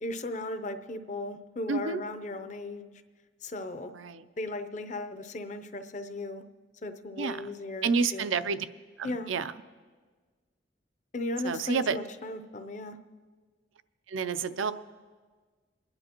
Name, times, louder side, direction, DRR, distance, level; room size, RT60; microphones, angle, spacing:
voice 1, 0.0-2.9 3.4-3.9 4.4-6.5 6.8-8.3 9.0-9.3 11.1-13.0, left 2 dB, 40° left, 10 dB, 0.6 m, -36 dB
voice 2, 1.7-2.0 3.9-4.2 7.2-7.5 7.8-8.7 9.0-9.5 11.4-12.0 14.1-14.7, right 5 dB, 85° right, 12 dB, 0.5 m, -29 dB
27.5 x 10.5 x 3.0 m, 1.5 s
head